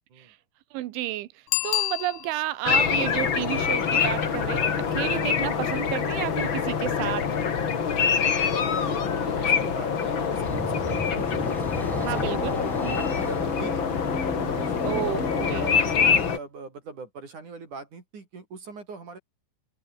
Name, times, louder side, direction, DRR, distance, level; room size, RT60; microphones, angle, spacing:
voice 1, 0.7-1.3 1.6-7.4 12.0-12.6 12.8-13.0 14.9-15.7, right 16 dB, 85° right, 3.6 m, -31 dB
Bicycle bell, 1.5-2.7 8.1-8.2, left 20 dB, 80° left, 3.0 m, -28 dB
sound 1, 2.6-16.4, left 6 dB, 45° left, 1.6 m, -25 dB
voice 2, 8.5-14.1 14.5-14.9 15.3-19.2, right 4 dB, 45° right, 5.2 m, -41 dB
sound 2, 10.2-16.4, equal, ahead, 1.2 m, -35 dB
omnidirectional pair, 5.4 m